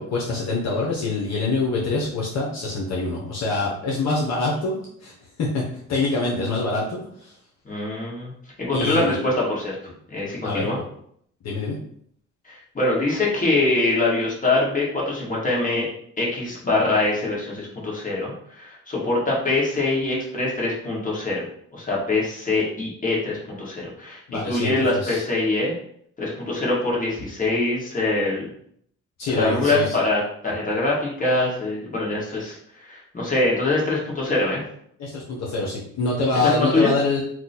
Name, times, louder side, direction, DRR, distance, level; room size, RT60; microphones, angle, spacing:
voice 1, 0.0-4.7 5.0-5.6 5.9-7.4 8.7-9.2 10.4-10.7 11.4-11.8 24.3-25.2 29.2-29.9 35.0-37.2, left 3 dB, 60° left, -4 dB, 0.9 m, -25 dB
voice 2, 7.6-8.3 8.6-9.8 10.1-10.8 12.4-15.9 16.2-21.4 21.7-25.7 26.2-28.5 29.3-34.6 36.4-36.9, left 2 dB, 25° left, -5 dB, 1.5 m, -24 dB
2.9 x 2.2 x 4.1 m, 0.67 s
cardioid pair, 90°, 30 cm